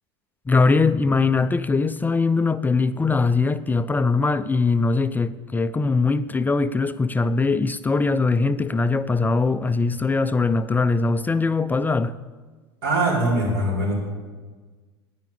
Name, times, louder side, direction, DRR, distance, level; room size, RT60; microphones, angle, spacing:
voice 1, 0.5-12.1, left 4 dB, 15° left, 0.4 m, -21 dB
voice 2, 12.8-14.0, right 1 dB, 70° right, 5.0 m, -22 dB
10.5 x 9.8 x 8.5 m
hypercardioid pair, 85°, 13 cm